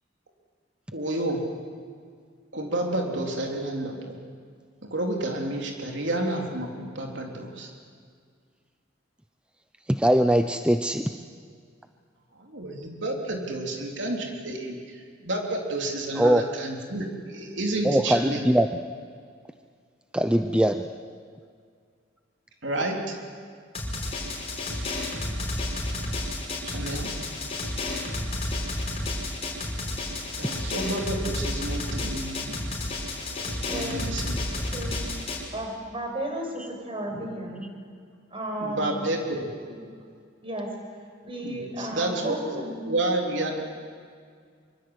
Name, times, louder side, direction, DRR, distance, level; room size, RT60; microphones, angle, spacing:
voice 1, 0.9-1.4 2.5-4.2 4.9-7.7 12.4-18.4 22.6-23.1 26.6-27.1 30.4-32.6 33.7-34.4 38.6-39.5 41.4-42.6 42.8-43.5, right 1 dB, 70° right, 1 dB, 3.8 m, -30 dB
voice 2, 9.9-11.1 16.2-16.4 17.8-18.7 20.1-20.9, right 1 dB, 5° right, 7 dB, 0.6 m, -21 dB
Drum, 23.7-35.4, left 2 dB, 35° left, 5.3 m, -31 dB
voice 3, 33.3-34.0 34.7-35.1 35.5-37.7 38.3-39.1 39.6-39.8 40.4-40.7 41.2-42.8, right 1 dB, 30° right, 2 dB, 5.9 m, -34 dB
25.0 x 24.5 x 8.1 m, 2.1 s
head